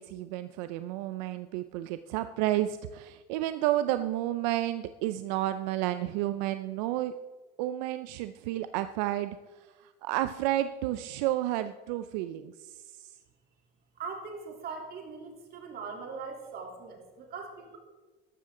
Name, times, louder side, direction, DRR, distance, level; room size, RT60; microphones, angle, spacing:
voice 1, 0.0-7.1 7.6-9.4 10.0-13.1, right 14 dB, 85° right, 11 dB, 0.5 m, -31 dB
voice 2, 14.0-17.8, right 5 dB, 50° right, 1 dB, 3.2 m, -41 dB
13.5 x 12.5 x 3.7 m, 1.3 s
supercardioid pair, 110°, 21 cm